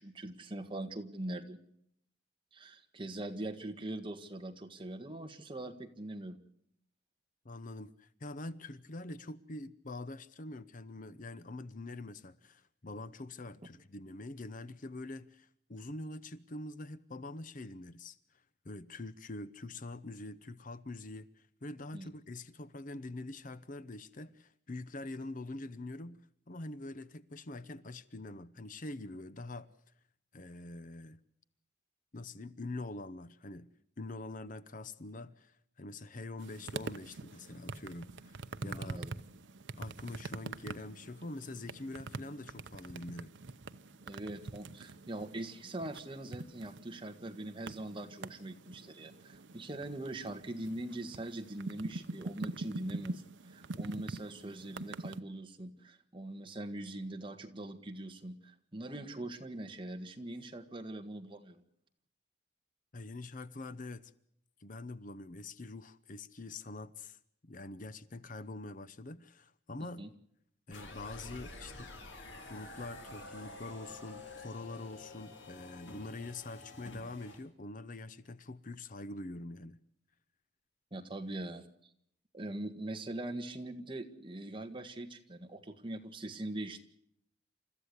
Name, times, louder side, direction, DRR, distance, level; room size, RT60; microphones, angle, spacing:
voice 1, 0.0-1.6 2.5-6.4 21.9-22.1 38.6-39.1 44.0-61.6 69.8-70.1 80.9-81.6 82.3-86.8, right 1 dB, 25° right, 1.7 m, -42 dB
voice 2, 7.4-18.2 18.6-26.2 26.5-29.7 30.3-31.2 32.1-33.7 34.0-39.0 39.8-43.3 62.9-64.1 64.6-70.1 70.7-71.9 72.5-79.8, left 2 dB, 45° left, 0.8 m, -45 dB
sound 1, 36.4-55.2, right 3 dB, 75° right, 0.8 m, -45 dB
sound 2, 70.7-77.4, left 2 dB, 75° left, 3.5 m, -49 dB
29.0 x 14.0 x 8.2 m
head